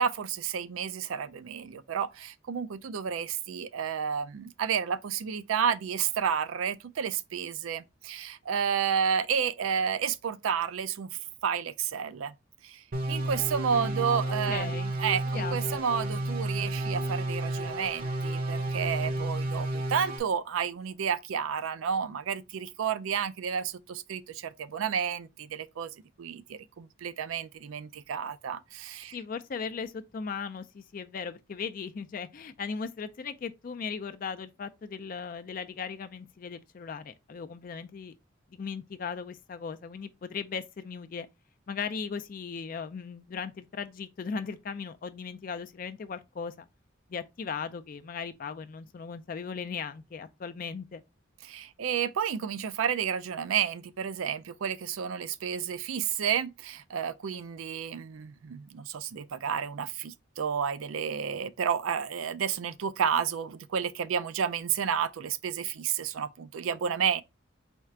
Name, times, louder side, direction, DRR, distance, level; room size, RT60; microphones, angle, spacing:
voice 1, 0.0-12.4 12.6-14.7 15.0-25.9 26.2-29.2 51.4-67.2, right 7 dB, 90° right, 0.4 m, -31 dB
sound 1, 12.9-20.2, right 1 dB, 45° right, 0.6 m, -31 dB
voice 2, 13.7-14.0 14.5-14.9 15.3-15.8 29.1-38.1 38.5-41.3 41.7-46.7 47.1-51.0, left 5 dB, 45° left, 0.3 m, -37 dB
4.3 x 2.4 x 4.3 m
head